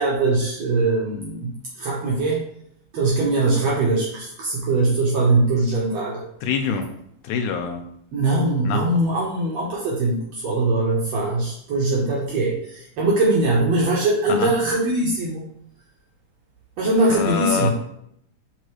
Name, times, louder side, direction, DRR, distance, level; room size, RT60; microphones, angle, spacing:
voice 1, 0.0-2.4 2.9-6.2 8.1-15.4 16.8-17.7, right 2 dB, 65° right, -4 dB, 2.1 m, -21 dB
voice 2, 6.4-6.9 7.2-7.9 8.6-8.9 14.3-14.5 17.1-17.7, left 7 dB, 85° left, 5 dB, 2.1 m, -25 dB
11.0 x 3.9 x 3.1 m, 0.72 s
omnidirectional pair, 3.6 m